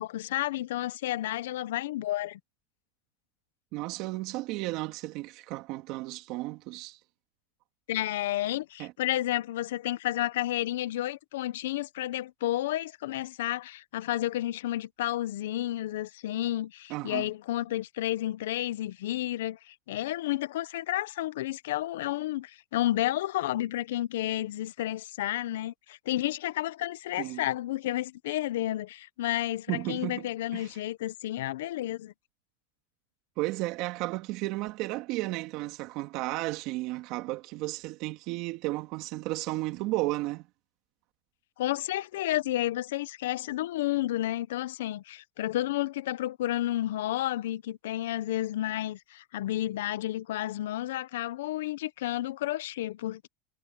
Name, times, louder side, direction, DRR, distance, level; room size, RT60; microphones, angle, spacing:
voice 1, 0.0-2.4 7.9-32.1 41.6-53.3, left 14 dB, 90° left, 0.7 m, -31 dB
voice 2, 3.7-7.0 8.8-8.9 16.9-17.3 27.2-27.4 29.7-30.3 30.5-30.7 33.4-40.5, right 19 dB, 55° right, 2.3 m, -33 dB
supercardioid pair, 135°, 0 cm